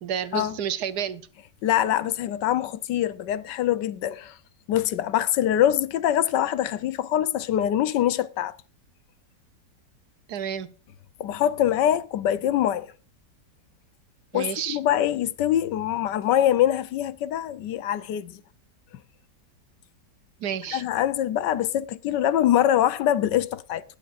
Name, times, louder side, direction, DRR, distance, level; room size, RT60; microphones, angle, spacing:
voice 1, 0.0-1.2 10.3-10.7 14.3-14.8 20.4-20.8, right 8 dB, 65° right, 1.3 m, -30 dB
voice 2, 1.6-4.4 4.7-8.5 11.2-12.9 14.3-18.4 20.7-23.8, left 11 dB, 75° left, 1.4 m, -24 dB
21.0 x 7.5 x 2.5 m
omnidirectional pair, 1.9 m